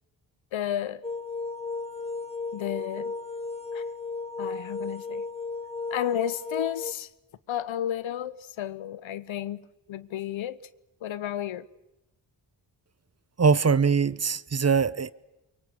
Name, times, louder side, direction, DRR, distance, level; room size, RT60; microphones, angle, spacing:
voice 1, 0.5-1.0 2.5-3.1 3.7-3.8 4.4-5.2 5.9-7.1 7.5-10.6 11.0-11.7, left 11 dB, 85° left, 1.0 m, -32 dB
sound 1, 1.0-6.9, left 4 dB, 15° left, 1.2 m, -34 dB
voice 2, 13.4-15.1, right 5 dB, 35° right, 0.8 m, -22 dB
23.5 x 23.5 x 8.0 m
cardioid pair, 55°, 46 cm